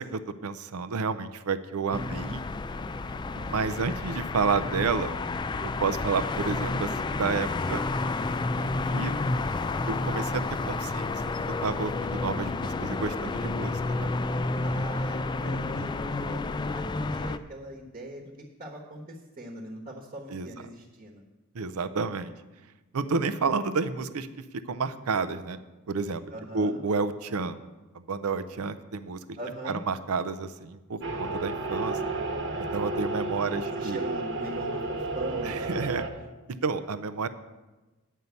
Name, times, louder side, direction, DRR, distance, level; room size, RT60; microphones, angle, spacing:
voice 1, 0.0-2.4 3.3-5.2 5.6-7.8 8.5-9.2 9.9-11.2 11.6-14.1 15.8-15.9 20.3-20.5 21.5-22.3 22.9-24.3 24.7-25.6 25.9-26.2 26.5-27.6 27.9-29.4 29.6-32.0 32.6-34.0 35.4-36.0 36.5-37.3, right 4 dB, 90° right, 11 dB, 0.6 m, -30 dB
sound 1, 1.9-17.4, left 3 dB, 20° left, 0.3 m, -30 dB
voice 2, 3.3-3.8 14.6-16.4 16.7-21.2 26.3-26.8 29.4-29.8 33.4-35.8, right 1 dB, 40° right, 0 dB, 1.2 m, -41 dB
sound 2, 31.0-36.1, right 2 dB, 60° right, 1.2 m, -32 dB
9.2 x 5.5 x 8.2 m, 1.1 s
head